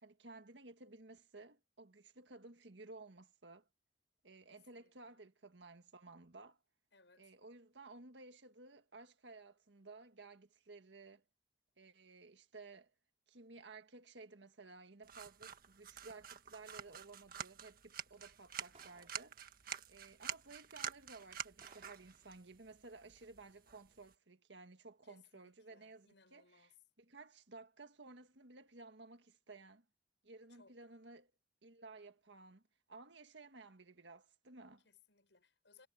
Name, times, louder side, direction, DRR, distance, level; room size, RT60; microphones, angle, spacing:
voice 1, 0.0-3.7 4.2-6.6 7.2-11.2 11.8-12.9 13.3-19.4 19.9-29.8 30.2-31.3 31.6-32.6 32.9-34.8, right 3 dB, 80° right, 1.7 m, -56 dB
voice 2, 4.5-5.2 6.9-7.3 25.0-26.8 30.5-30.8 34.8-35.9, left 5 dB, 80° left, 6.9 m, -67 dB
sound 1, 15.0-24.1, right 9 dB, 55° right, 1.6 m, -49 dB
sound 2, 18.7-19.3 20.3-20.4 21.0-21.1 21.6-22.1, right 4 dB, 40° right, 4.1 m, -64 dB
head